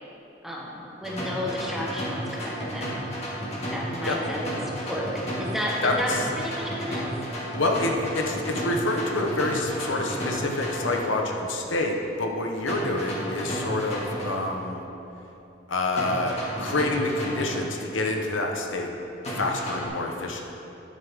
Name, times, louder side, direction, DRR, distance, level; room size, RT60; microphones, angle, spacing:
voice 1, 0.4-2.9 3.6-5.1 5.4-7.1, equal, ahead, -3 dB, 1.3 m, -32 dB
sound 1, 1.0-11.0 12.7-14.3 15.9-17.6 19.2-19.9, equal, 35° left, 2.0 m, -33 dB
voice 2, 5.8-6.2 7.6-14.8 15.7-18.9 19.3-20.4, left 2 dB, 80° left, 2 dB, 1.0 m, -27 dB
11.0 x 9.6 x 3.6 m, 2.9 s
head